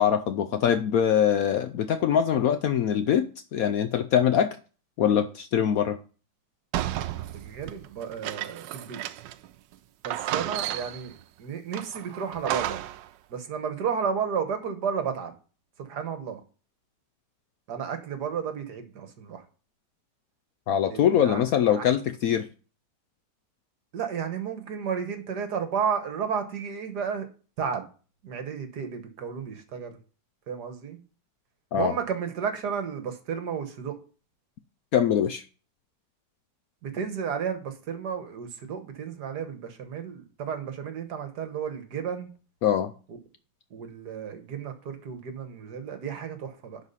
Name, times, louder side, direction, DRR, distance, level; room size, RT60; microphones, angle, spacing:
voice 1, 0.0-4.6 5.0-6.0 20.7-22.5 31.7-31.9 34.9-35.4 42.6-42.9, left 9 dB, 70° left, 9 dB, 0.9 m, -23 dB
sound 1, 6.7-9.5 9.7-9.8 10.0-11.1 11.7-13.1, right 13 dB, 80° right, 1.2 m, -33 dB
voice 2, 6.9-9.0 10.0-12.8 13.3-15.3 15.8-16.4 17.7-19.4 20.9-21.4 21.7-21.8 23.9-27.3 27.6-27.8 28.2-30.0 30.5-31.0 31.7-34.0 36.8-42.3 43.1-43.2 43.7-46.8, right 7 dB, 65° right, 7 dB, 1.7 m, -32 dB
10.5 x 4.1 x 5.5 m, 0.37 s
omnidirectional pair, 1.9 m